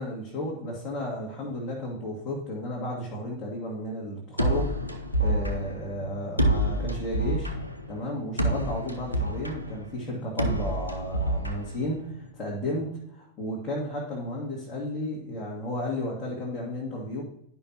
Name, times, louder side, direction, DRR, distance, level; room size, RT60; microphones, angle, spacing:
voice 1, 0.0-7.5 7.9-17.2, left 1 dB, 25° left, -5 dB, 1.9 m, -33 dB
sound 1, 4.4-12.3, right 1 dB, 90° left, 0.7 m, -28 dB
11.0 x 5.4 x 2.9 m, 0.75 s
figure-of-eight pair, 90°, 0 cm